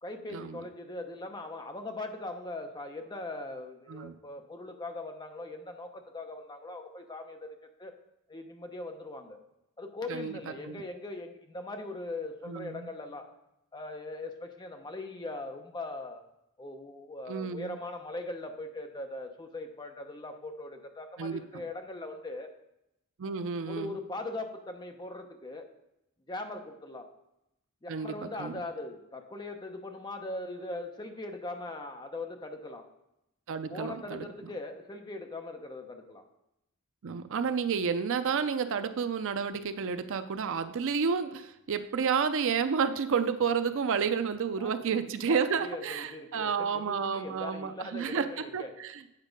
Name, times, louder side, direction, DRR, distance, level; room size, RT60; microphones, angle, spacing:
voice 1, 0.0-7.9 8.3-9.4 9.8-13.3 13.7-16.2 16.6-22.5 23.6-25.7 26.3-27.1 27.8-32.9 33.7-36.2 44.1-48.7, left 2 dB, 20° left, 5 dB, 0.7 m, -40 dB
voice 2, 12.5-12.9 17.3-17.7 21.2-21.4 23.2-23.9 27.9-28.5 33.5-34.3 37.0-49.0, right 6 dB, 60° right, 10 dB, 0.5 m, -30 dB
8.2 x 4.5 x 5.2 m, 0.86 s
head